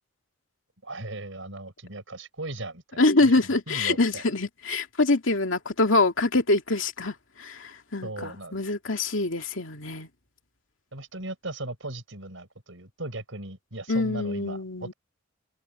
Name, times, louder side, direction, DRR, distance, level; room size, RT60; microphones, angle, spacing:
voice 1, 0.8-3.3 3.7-4.2 8.0-8.5 10.9-14.9, right 2 dB, 70° right, 6.7 m, -38 dB
voice 2, 3.0-10.1 13.9-14.9, left 2 dB, 70° left, 2.6 m, -25 dB
open air
head